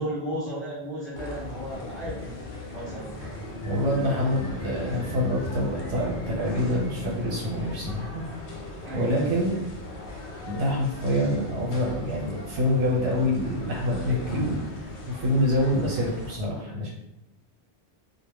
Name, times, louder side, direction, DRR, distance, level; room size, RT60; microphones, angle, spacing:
voice 1, 0.0-2.3 2.7-3.4 8.8-9.3, right 1 dB, ahead, -10 dB, 0.5 m, -34 dB
sound 1, 1.1-16.4, left 1 dB, 85° left, 0.9 m, -38 dB
voice 2, 3.7-8.2 8.9-9.6 10.5-14.6 15.1-16.9, left 1 dB, 75° right, -4 dB, 1.2 m, -26 dB
2.3 x 2.2 x 3.3 m, 0.90 s
omnidirectional pair, 1.1 m